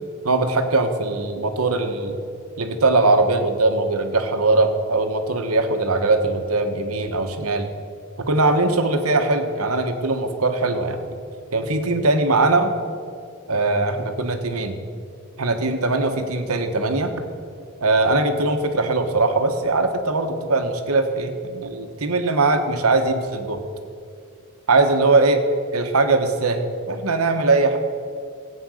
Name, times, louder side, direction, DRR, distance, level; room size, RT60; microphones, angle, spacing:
voice 1, 0.2-2.2 2.6-7.7 8.2-11.0 11.5-12.7 13.5-14.8 15.4-17.1 17.8-23.6 24.7-25.4 25.7-27.8, right 3 dB, 90° right, 6 dB, 1.3 m, -20 dB
15.5 x 8.8 x 6.5 m, 2.3 s
head